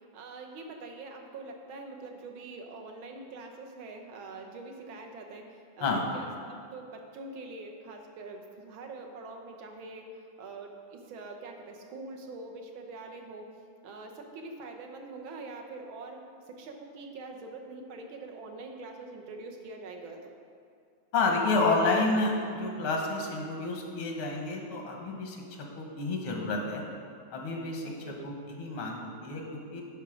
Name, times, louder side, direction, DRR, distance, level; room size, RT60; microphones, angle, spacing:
voice 1, 0.1-10.1 10.4-13.5 13.8-16.2 16.6-20.3 27.8-28.3, right 3 dB, 75° right, 2 dB, 1.7 m, -44 dB
voice 2, 21.1-26.8 27.3-27.9 28.2-29.8, left 3 dB, 90° left, 1 dB, 2.0 m, -30 dB
10.0 x 5.7 x 5.0 m, 2.3 s
omnidirectional pair, 2.3 m